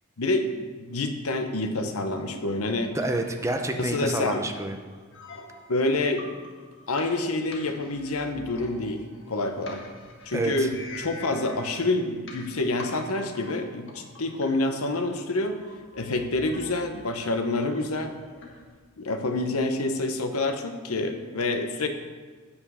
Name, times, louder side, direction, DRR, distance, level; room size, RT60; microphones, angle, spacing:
voice 1, 0.2-0.5 0.8-2.9 3.8-4.4 5.7-6.2 6.9-9.8 10.2-15.6 15.9-18.1 19.0-21.9, left 2 dB, 80° left, 6 dB, 0.9 m, -27 dB
sound 1, 2.5-18.7, left 2 dB, 60° left, 1.6 m, -46 dB
voice 2, 2.9-4.8 10.3-10.7, right 2 dB, 15° right, 4 dB, 0.6 m, -28 dB
8.7 x 7.1 x 5.6 m, 1.5 s
head